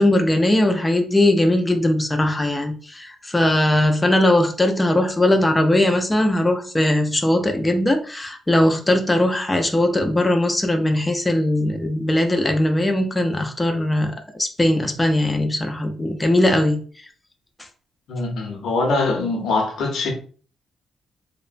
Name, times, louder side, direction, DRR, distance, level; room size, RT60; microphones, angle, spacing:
voice 1, 0.0-16.8, left 1 dB, 15° left, 0.4 m, -19 dB
voice 2, 18.1-20.1, left 3 dB, 80° left, 0.7 m, -23 dB
2.8 x 2.1 x 2.5 m
cardioid pair, 105°, 0 cm